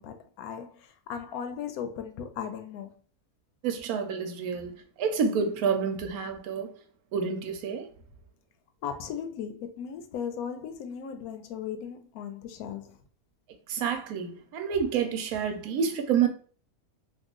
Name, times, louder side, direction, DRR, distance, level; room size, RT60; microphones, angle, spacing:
voice 1, 0.0-3.0 8.8-13.0, left 8 dB, 75° left, 1.0 m, -37 dB
voice 2, 3.6-4.7 5.0-6.7 7.1-7.9 13.7-16.3, right 6 dB, 75° right, 1.0 m, -28 dB
2.9 x 2.4 x 3.6 m
omnidirectional pair, 1.7 m